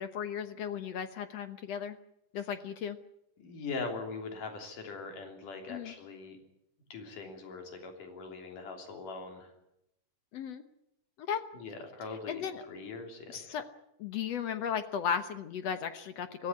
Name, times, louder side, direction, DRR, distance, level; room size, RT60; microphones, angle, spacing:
voice 1, 0.0-2.0 2.3-3.0 5.7-5.9 10.3-10.6 11.2-11.4 12.3-12.6 13.3-13.7 14.0-16.5, left 7 dB, 60° left, 10 dB, 2.0 m, -35 dB
voice 2, 3.4-6.4 6.9-9.5 11.5-13.4, left 4 dB, 80° left, 4 dB, 4.7 m, -41 dB
23.5 x 15.5 x 9.8 m, 0.82 s
omnidirectional pair, 3.6 m